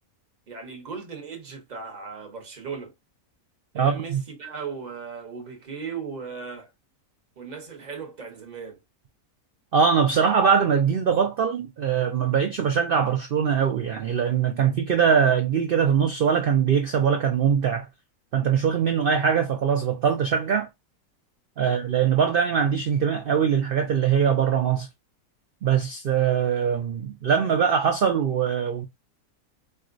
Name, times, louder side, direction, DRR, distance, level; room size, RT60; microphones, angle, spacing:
voice 1, 0.5-2.9 3.7-6.7 7.4-8.8 21.6-21.8, right 5 dB, 35° right, 0.8 m, -37 dB
voice 2, 3.7-4.2 9.7-17.9 18.3-20.7 21.6-24.9 25.6-28.8, right 7 dB, 80° right, 0.5 m, -22 dB
4.4 x 2.1 x 2.4 m
omnidirectional pair, 1.6 m